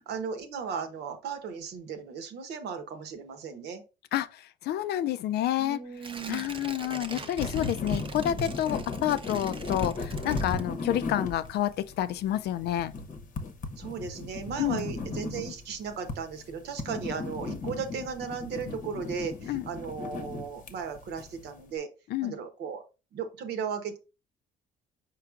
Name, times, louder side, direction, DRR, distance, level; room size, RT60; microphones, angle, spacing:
voice 1, 0.0-3.8 5.6-6.5 13.8-21.9 22.2-22.8 23.1-24.0, right 6 dB, 65° right, 1.0 m, -36 dB
voice 2, 4.1-5.8 6.3-12.9 14.6-14.8 19.5-19.6 22.1-22.3, left 12 dB, 60° left, 0.4 m, -29 dB
Tearing, 6.0-11.1 11.5-11.6, right 3 dB, 30° right, 0.7 m, -43 dB
sound 1, 7.4-21.6, left 3 dB, 45° left, 0.9 m, -37 dB
4.8 x 4.5 x 2.4 m
supercardioid pair, 70°, 19 cm